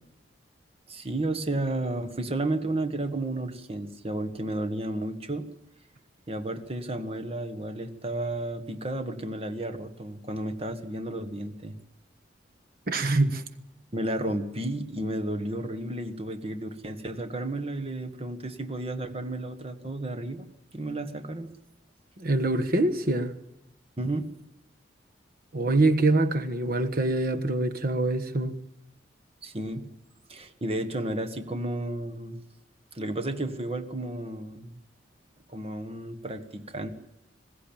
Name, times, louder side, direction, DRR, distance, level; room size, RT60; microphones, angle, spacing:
voice 1, 0.9-5.5 6.3-11.7 13.9-20.4 20.7-21.5 24.0-24.3 29.4-29.9 30.3-32.4 32.9-34.8 35.5-36.9, right 1 dB, 30° right, 1.5 m, -32 dB
voice 2, 12.9-13.4 22.2-23.3 25.5-28.6, right 2 dB, 50° right, 1.4 m, -24 dB
21.0 x 16.0 x 8.8 m
head